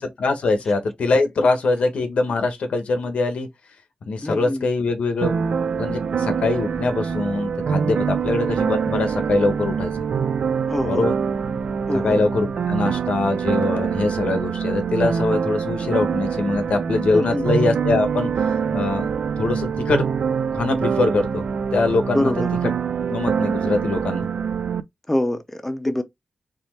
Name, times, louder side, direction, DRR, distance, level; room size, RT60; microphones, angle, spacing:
voice 1, 0.0-3.5 4.1-5.3 5.8-9.9 10.8-11.1 12.0-18.3 18.7-20.0 20.5-21.4 21.7-22.3 22.6-22.7 23.1-24.3, left 3 dB, 90° left, 1.2 m, -23 dB
voice 2, 4.2-4.7 10.7-11.1 11.9-12.2 17.1-17.5 22.1-22.5 25.1-26.0, left 1 dB, 10° left, 0.6 m, -24 dB
sound 1, 5.2-24.8, right 6 dB, 75° right, 0.4 m, -24 dB
4.3 x 3.3 x 3.2 m
wide cardioid pair, 145°, 2 cm